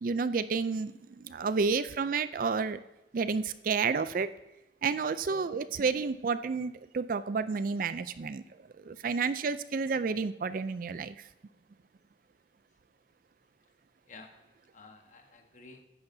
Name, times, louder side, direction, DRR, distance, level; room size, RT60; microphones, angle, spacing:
voice 1, 0.0-2.8 3.1-4.3 4.8-8.4 8.8-11.2, right 5 dB, 45° right, 14 dB, 0.4 m, -30 dB
voice 2, 14.1-15.8, left 3 dB, 40° left, 4 dB, 1.2 m, -53 dB
14.5 x 9.8 x 2.7 m, 0.97 s
head